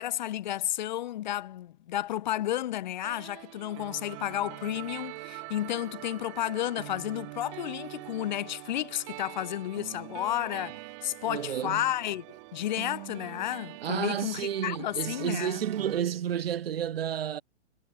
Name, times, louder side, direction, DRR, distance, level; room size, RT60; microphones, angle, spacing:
voice 1, 0.0-12.3 12.5-15.7, left 13 dB, 40° left, 3.1 m, -32 dB
Giant Step, 3.0-16.0, right 29 dB, 25° right, 5.9 m, -44 dB
voice 2, 11.3-11.9 13.8-17.4, right 9 dB, 55° right, 2.4 m, -31 dB
hypercardioid pair, 170°, 36 cm